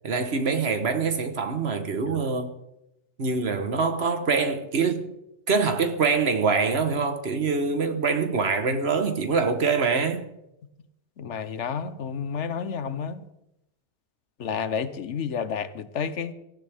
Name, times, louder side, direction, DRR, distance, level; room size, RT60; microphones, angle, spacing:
voice 1, 0.0-2.5 3.2-5.1 5.5-10.3, right 4 dB, 65° right, 1.5 m, -24 dB
voice 2, 11.2-13.2 14.4-16.3, left 6 dB, 80° left, 1.2 m, -30 dB
17.5 x 15.0 x 3.6 m
omnidirectional pair, 1.2 m